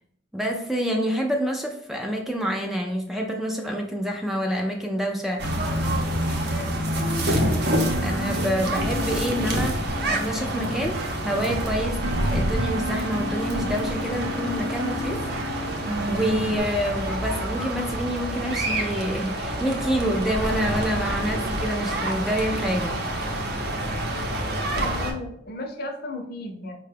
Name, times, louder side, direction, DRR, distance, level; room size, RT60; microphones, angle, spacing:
voice 1, 0.3-5.4 8.0-9.8 10.1-12.0 12.3-15.2 15.5-23.0, equal, ahead, 1 dB, 0.3 m, -27 dB
sound 1, 5.4-25.1, right 1 dB, 55° right, 0.7 m, -27 dB
sound 2, 7.7-16.6, equal, 90° right, 0.5 m, -33 dB
voice 2, 8.0-8.4 24.6-26.7, left 1 dB, 55° left, 3 dB, 0.6 m, -34 dB
4.7 x 2.2 x 3.3 m, 0.75 s
head